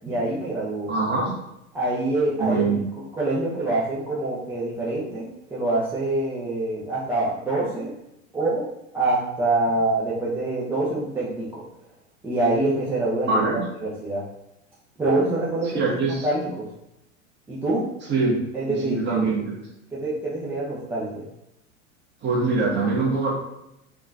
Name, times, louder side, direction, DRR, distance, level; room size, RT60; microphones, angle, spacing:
voice 1, 0.0-0.9 1.7-2.7 3.2-8.0 8.3-8.7 8.9-11.6 12.2-14.2 15.0-15.9 16.2-16.7 17.5-17.9 18.5-19.3 19.9-21.2, right 2 dB, 5° right, -8 dB, 0.4 m, -25 dB
voice 2, 0.9-1.3 2.4-2.8 13.3-13.6 15.7-16.3 18.1-18.4 18.8-19.5 22.2-23.3, right 3 dB, 25° right, -3 dB, 1.1 m, -23 dB
3.5 x 2.3 x 2.5 m, 0.86 s
figure-of-eight pair, 90°, 41 cm